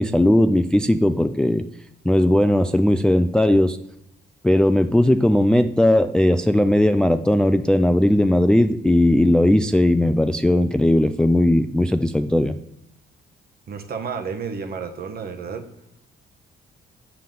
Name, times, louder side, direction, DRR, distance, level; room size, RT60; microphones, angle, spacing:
voice 1, 0.0-1.6 2.0-3.8 4.4-12.6, left 1 dB, 5° left, 10 dB, 0.3 m, -18 dB
voice 2, 13.7-15.6, right 5 dB, 50° right, 5 dB, 1.2 m, -31 dB
7.4 x 6.9 x 3.8 m, 0.79 s
cardioid pair, 90°, 20 cm